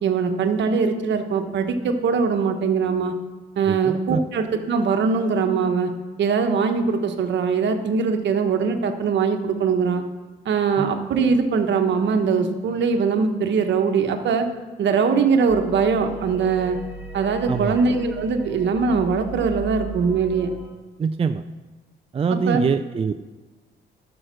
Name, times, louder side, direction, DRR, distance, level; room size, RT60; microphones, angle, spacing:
voice 1, 0.0-3.1 3.6-5.9 6.2-10.0 10.4-14.5 14.8-16.8 17.1-20.5 22.3-22.6, right 5 dB, 65° right, 6 dB, 1.2 m, -21 dB
voice 2, 3.6-4.2 10.8-10.9 17.5-17.8 21.0-21.4 22.1-23.1, right 6 dB, 30° right, 8 dB, 0.4 m, -24 dB
sound 1, 15.5-20.7, right 4 dB, 5° right, 4.2 m, -37 dB
12.0 x 6.4 x 6.2 m, 1.3 s
cardioid pair, 90°, 20 cm